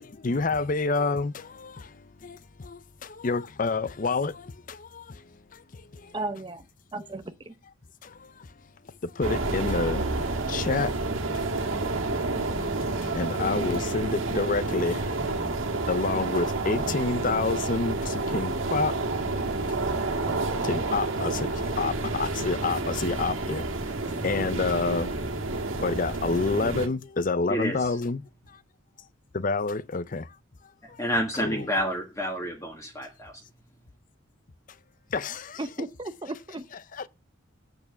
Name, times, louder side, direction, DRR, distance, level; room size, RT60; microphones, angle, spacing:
voice 1, 0.0-6.3 8.0-8.5 9.0-10.1 10.5-15.2 15.9-19.0 19.7-24.0 24.2-25.1 25.7-28.6 29.3-30.4 30.9-31.0 31.4-31.7 35.1-35.7 36.7-37.1, left 3 dB, 40° left, 0.5 m, -29 dB
voice 2, 6.1-6.6 6.9-7.5 35.6-36.7, right 2 dB, 20° right, 0.6 m, -35 dB
sound 1, 9.2-26.9, right 2 dB, 70° right, 1.8 m, -29 dB
voice 3, 31.0-33.3, equal, 15° left, 1.5 m, -29 dB
8.5 x 6.7 x 7.0 m
head